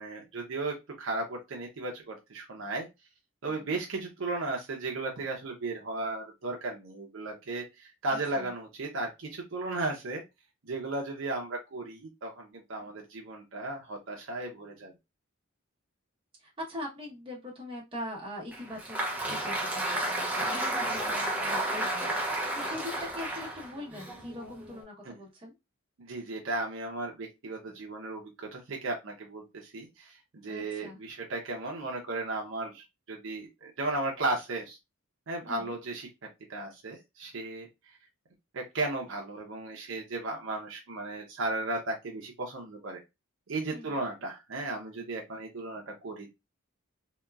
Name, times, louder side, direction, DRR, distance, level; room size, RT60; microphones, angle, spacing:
voice 1, 0.0-2.9 3.4-10.2 10.6-14.9 20.4-20.6 25.0-25.2 26.0-34.8 35.3-36.1 36.5-37.7 38.5-43.0 43.5-46.3, right 2 dB, 65° right, 0 dB, 0.6 m, -35 dB
voice 2, 3.5-3.8 8.1-8.5 16.4-25.5 27.7-27.8 30.5-31.0 35.5-35.7 43.7-44.0, left 1 dB, 25° right, -3 dB, 0.9 m, -42 dB
Applause, 18.5-24.8, right 1 dB, 10° right, 0.5 m, -32 dB
2.8 x 2.2 x 2.3 m, 0.23 s
head